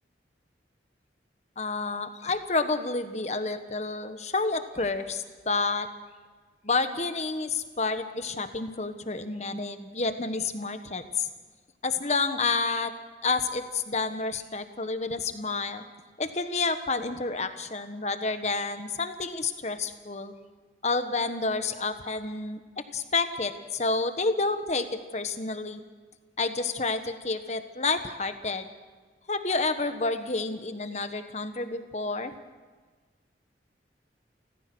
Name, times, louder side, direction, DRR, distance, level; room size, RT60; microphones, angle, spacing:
voice 1, 1.6-5.9 6.6-11.3 11.8-12.9 13.2-15.8 16.2-20.3 20.8-25.8 26.4-28.7 29.3-32.3, left 3 dB, 40° left, 9 dB, 1.3 m, -29 dB
29.5 x 15.0 x 6.2 m, 1.4 s
head